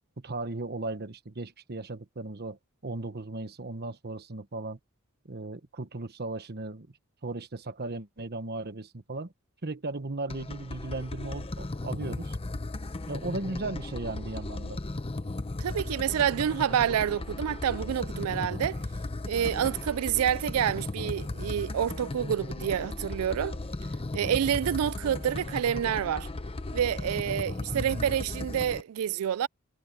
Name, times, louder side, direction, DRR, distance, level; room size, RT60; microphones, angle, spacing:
voice 1, 0.2-4.8 5.2-6.9 7.2-9.3 9.6-12.4 13.1-14.8 27.7-28.1, right 2 dB, 50° right, 1.2 m, -36 dB
sound 1, 10.3-28.8, left 2 dB, 25° left, 0.7 m, -36 dB
voice 2, 15.6-18.8 19.2-23.6 24.1-26.3 26.7-29.5, right 9 dB, 90° right, 0.4 m, -28 dB
head